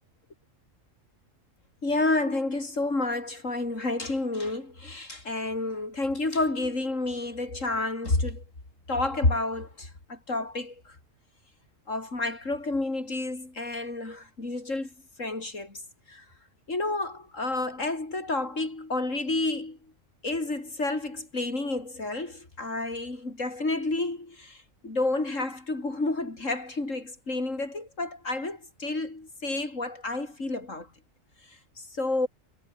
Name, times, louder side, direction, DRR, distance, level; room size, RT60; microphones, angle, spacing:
voice 1, 1.8-8.4 8.9-10.7 11.9-14.9 15.2-15.8 16.1-16.2 16.7-19.8 20.2-24.6 24.8-30.9 32.0-32.3, left 2 dB, 75° left, 5.3 m, -30 dB
omnidirectional pair, 1.3 m